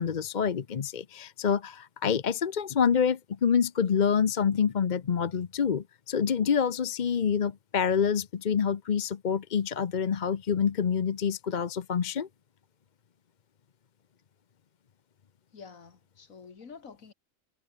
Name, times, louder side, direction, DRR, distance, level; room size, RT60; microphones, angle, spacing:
voice 1, 0.0-12.3, left 7 dB, 40° left, 0.7 m, -27 dB
voice 2, 15.5-17.1, left 5 dB, 85° left, 2.3 m, -48 dB
omnidirectional pair, 1.4 m